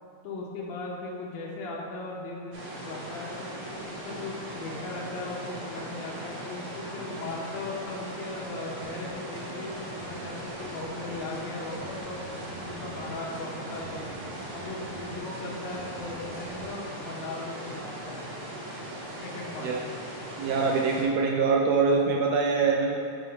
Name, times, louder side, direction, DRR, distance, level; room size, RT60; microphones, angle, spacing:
voice 1, 0.2-3.5 3.9-14.1 14.5-18.3 19.2-19.9, left 2 dB, 65° left, -3 dB, 1.2 m, -38 dB
sound 1, 2.5-21.0, right 1 dB, 55° right, 1.9 m, -39 dB
sound 2, 8.8-16.7, right 3 dB, 75° right, 2.2 m, -47 dB
voice 2, 20.4-23.0, right 4 dB, 90° right, 0 dB, 1.4 m, -24 dB
9.1 x 3.8 x 4.5 m, 2.5 s
omnidirectional pair, 3.5 m